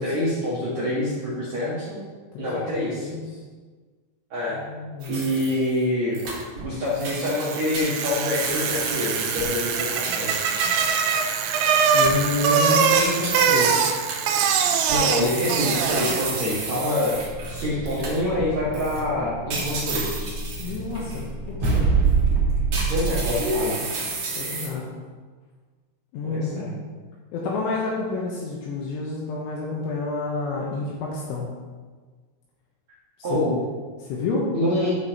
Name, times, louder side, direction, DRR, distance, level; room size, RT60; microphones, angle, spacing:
voice 1, 0.0-2.0 2.4-3.1 4.3-4.6 5.1-6.2 6.6-10.5 14.9-17.2 17.5-20.3 22.9-23.8 26.2-26.7 33.2-33.6 34.5-34.9, left 1 dB, 75° right, -9 dB, 1.6 m, -26 dB
voice 2, 2.3-2.7 3.0-3.4 4.5-5.2 11.9-13.9 20.6-21.9 24.4-24.9 26.1-26.7 27.3-31.5 33.3-33.4 34.0-34.5, left 3 dB, 75° left, -3 dB, 3.3 m, -29 dB
sound 1, 5.0-5.8 6.1-6.7 7.0-11.4 12.0-18.4 18.7-19.0 19.5-21.2 21.6-21.8 22.3-24.7, right 3 dB, 55° right, 2.0 m, -32 dB
Bicycle, 7.1-16.6, right 6 dB, 90° right, 3.4 m, -23 dB
sound 2, 17.1-23.6, right 4 dB, 40° right, 2.4 m, -26 dB
12.5 x 6.7 x 3.0 m, 1.5 s
omnidirectional pair, 6.0 m